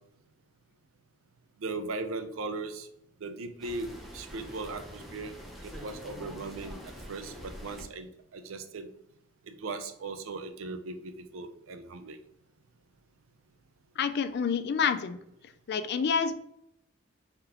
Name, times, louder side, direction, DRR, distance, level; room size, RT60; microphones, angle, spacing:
voice 1, 1.6-2.9 3.2-5.3 5.6-6.8 7.1-8.9 9.5-12.2, right 3 dB, 80° right, 8 dB, 0.5 m, -38 dB
sound 1, 3.6-7.8, equal, ahead, 0.7 m, -45 dB
voice 2, 14.0-15.2 15.7-16.3, left 6 dB, 55° left, 11 dB, 0.4 m, -28 dB
3.5 x 2.9 x 3.5 m, 0.74 s
head